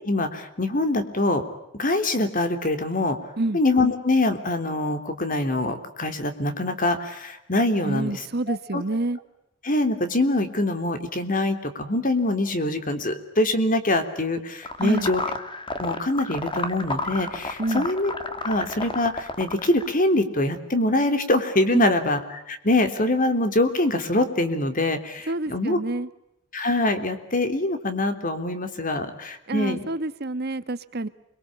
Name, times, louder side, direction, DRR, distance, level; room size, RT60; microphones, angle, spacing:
voice 1, 0.0-1.4 1.7-3.2 3.5-8.2 8.5-8.8 9.6-15.2 15.8-18.1 18.4-25.8 26.5-29.8, left 2 dB, 45° left, 8 dB, 3.3 m, -24 dB
voice 2, 7.8-9.2 14.8-15.1 17.6-17.9 21.7-21.9 25.3-26.1 29.5-31.1, right 2 dB, 55° right, 13 dB, 1.3 m, -27 dB
sound 1, 14.6-19.9, left 3 dB, 25° left, 2.1 m, -31 dB
29.0 x 23.0 x 8.7 m, 0.83 s
head